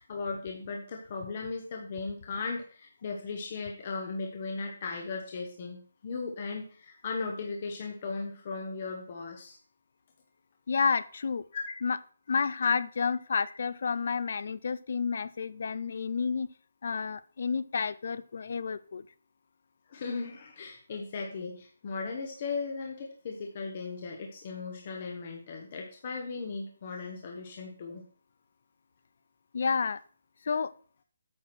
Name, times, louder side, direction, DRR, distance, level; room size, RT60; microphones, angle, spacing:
voice 1, 0.0-9.6 11.5-11.6 19.9-28.1, left 4 dB, 30° left, 2 dB, 1.0 m, -37 dB
voice 2, 10.7-11.5 11.8-12.0 12.3-16.5 16.8-19.0 29.5-30.0 30.5-30.7, left 5 dB, 45° left, 17 dB, 0.4 m, -30 dB
8.8 x 4.6 x 6.1 m, 0.43 s
hypercardioid pair, 175°, 0 cm